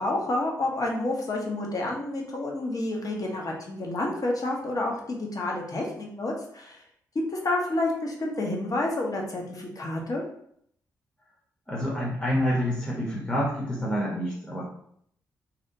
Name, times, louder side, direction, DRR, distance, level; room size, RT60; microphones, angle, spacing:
voice 1, 0.0-6.8 7.3-10.2, left 2 dB, 45° left, 0 dB, 0.8 m, -29 dB
voice 2, 11.7-14.6, equal, 10° left, -4 dB, 0.8 m, -27 dB
2.8 x 2.1 x 2.6 m, 0.68 s
supercardioid pair, 45°, 8 cm